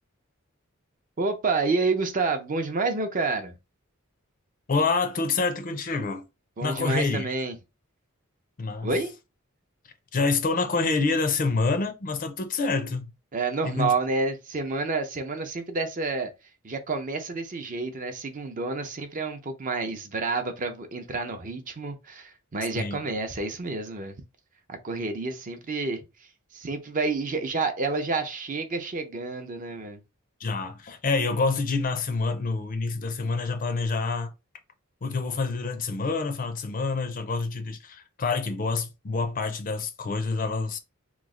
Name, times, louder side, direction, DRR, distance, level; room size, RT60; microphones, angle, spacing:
voice 1, 1.2-3.5 6.6-7.5 8.8-9.1 13.3-16.3 16.6-24.1 24.7-26.0 26.5-30.0, right 3 dB, 40° right, 0.5 m, -29 dB
voice 2, 4.7-6.3 6.6-7.3 8.6-8.9 10.1-13.1 13.6-13.9 22.8-23.0 30.4-34.3 35.0-40.8, left 4 dB, 40° left, 0.5 m, -27 dB
3.0 x 2.0 x 3.6 m
head